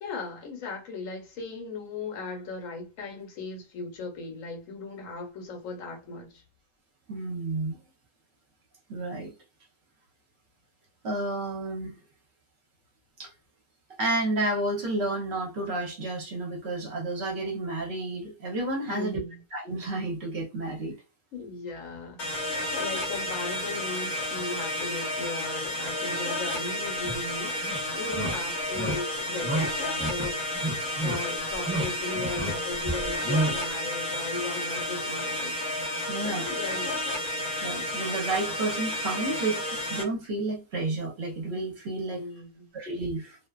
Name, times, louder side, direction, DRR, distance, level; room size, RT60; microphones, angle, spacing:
voice 1, 0.0-6.4 18.9-19.4 21.3-30.4 31.0-35.6 36.2-37.0 42.1-42.7, left 3 dB, 70° left, 1.1 m, -37 dB
voice 2, 7.1-7.8 8.9-9.3 11.0-11.9 13.2-13.3 14.0-19.2 19.5-20.9 36.1-36.5 37.6-39.6 39.9-42.2 42.7-43.4, right 2 dB, 55° right, 0.9 m, -31 dB
sound 1, 22.2-40.0, left 1 dB, 35° left, 0.8 m, -31 dB
sound 2, 27.0-27.2 27.6-27.8 28.1-28.3 28.7-29.0 29.4-29.7 30.0-30.3 30.5-31.2 31.5-31.9 32.1-32.5 32.9-33.5, right 2 dB, 15° right, 0.4 m, -29 dB
2.5 x 2.3 x 2.2 m
omnidirectional pair, 1.5 m